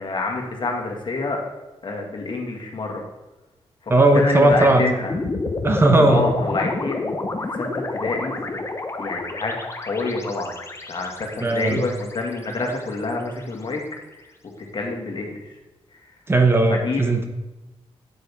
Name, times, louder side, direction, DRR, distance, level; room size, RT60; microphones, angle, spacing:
voice 1, 0.0-1.4 1.8-3.0 4.1-5.1 6.1-7.2 7.6-8.6 9.0-9.6 9.8-10.5 10.9-13.8 14.7-15.3 16.7-17.1, left 3 dB, 50° left, 1 dB, 1.9 m, -27 dB
voice 2, 3.9-4.9 5.6-6.3 11.4-11.9 16.3-17.3, right 2 dB, 20° right, 5 dB, 1.0 m, -17 dB
sound 1, 5.1-13.4, left 2 dB, 25° left, 1.0 m, -30 dB
9.0 x 7.7 x 3.6 m, 1.1 s
cardioid pair, 95°, 11 cm